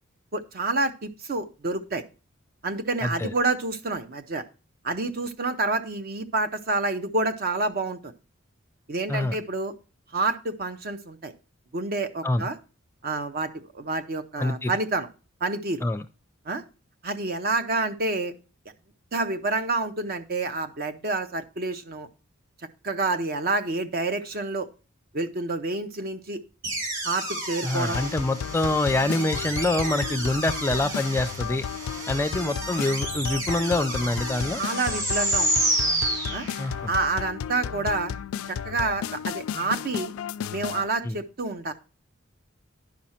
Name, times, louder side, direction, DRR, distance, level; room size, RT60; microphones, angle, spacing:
voice 1, 0.3-2.0 2.6-4.4 4.8-8.1 8.9-9.7 10.1-11.3 11.7-12.6 13.0-15.1 15.4-15.8 16.5-16.6 17.0-18.3 19.1-22.1 22.8-24.7 25.1-26.4 27.0-28.0 34.5-35.7 36.3-36.5 36.9-38.1 38.5-40.1 40.5-41.7, right 3 dB, 45° right, 9 dB, 0.6 m, -28 dB
voice 2, 3.0-3.3 9.1-9.4 12.2-12.4 14.4-14.7 15.8-16.1 27.6-31.6 32.1-34.6 36.6-36.9 41.0-41.2, left 2 dB, 10° left, 9 dB, 0.4 m, -25 dB
sound 1, 26.6-36.9, right 1 dB, 65° right, 2.8 m, -30 dB
sound 2, 27.9-40.9, left 8 dB, 85° left, 0.3 m, -34 dB
10.5 x 6.0 x 4.2 m, 0.34 s
head